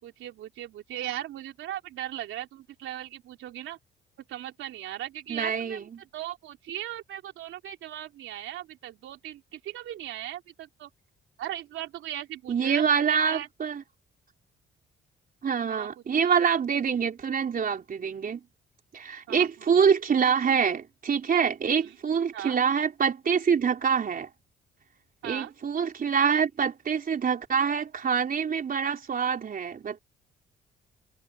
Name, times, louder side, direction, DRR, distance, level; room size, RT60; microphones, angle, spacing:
voice 1, 0.0-3.8 4.3-10.9 11.4-13.5 15.7-16.2 19.3-19.5 19.8-19.9 21.8-22.0 22.3-22.6 25.2-25.5, right 12 dB, 80° right, 3.3 m, -38 dB
voice 2, 5.3-5.8 12.5-13.8 15.4-18.4 18.9-24.3 25.2-30.0, right 7 dB, 45° right, 3.9 m, -25 dB
cardioid pair, 90°, 20 cm